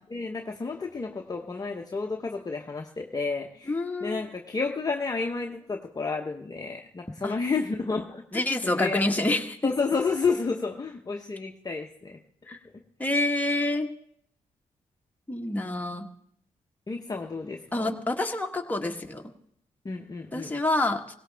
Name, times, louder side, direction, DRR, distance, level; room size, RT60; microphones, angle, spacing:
voice 1, 0.1-9.1 9.6-12.2 16.9-17.9 19.8-20.5, left 4 dB, 30° left, 2 dB, 1.0 m, -31 dB
voice 2, 3.7-4.2 7.2-7.4 8.3-9.6 12.5-12.6 13.0-13.9 15.3-16.1 17.7-19.2 20.3-21.0, left 2 dB, 10° left, 2 dB, 1.5 m, -27 dB
18.0 x 17.0 x 3.4 m, 0.70 s
cardioid pair, 75°, 13 cm